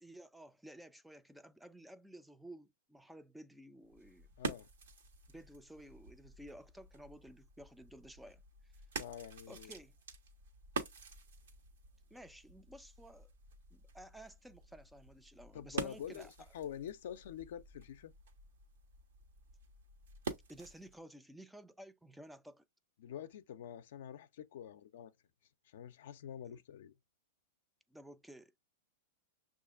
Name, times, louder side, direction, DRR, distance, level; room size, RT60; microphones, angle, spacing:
voice 1, 0.0-4.3 5.3-8.7 9.5-10.0 12.1-13.3 13.7-16.3 20.5-22.6 27.9-28.5, right 1 dB, 5° right, 0.3 m, -54 dB
sound 1, 3.8-21.0, right 4 dB, 85° right, 1.0 m, -48 dB
voice 2, 4.4-4.7 8.9-9.7 15.5-18.1 23.0-25.1 25.7-26.9, left 9 dB, 70° left, 0.4 m, -47 dB
6.2 x 2.4 x 2.4 m
hypercardioid pair, 135°, 0 cm